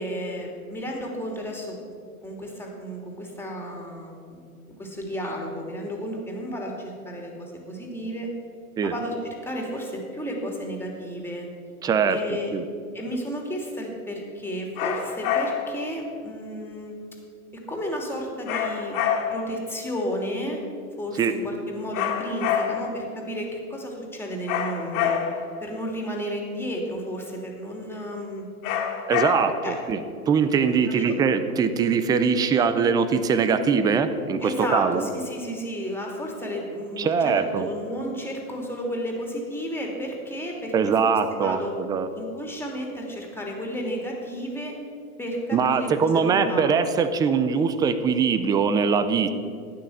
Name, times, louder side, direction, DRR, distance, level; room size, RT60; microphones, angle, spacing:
voice 1, 0.0-1.8 2.2-8.3 8.8-11.5 12.1-12.5 12.9-16.9 17.7-19.0 19.3-20.6 21.0-25.2 25.6-28.4 29.6-29.8 30.9-31.1 34.4-41.7 42.1-44.8 45.2-46.7, equal, 5° left, 0 dB, 3.0 m, -32 dB
voice 2, 11.8-12.2 12.5-12.6 21.2-21.3 29.1-35.1 37.0-37.7 40.7-42.1 45.5-49.3, right 6 dB, 10° right, 11 dB, 0.3 m, -22 dB
sound 1, 14.8-15.8 18.5-19.6 21.9-23.0 24.5-25.5 28.6-29.7, left 8 dB, 45° left, 2.2 m, -27 dB
12.5 x 9.7 x 7.3 m, 2.3 s
hypercardioid pair, 110°, 44 cm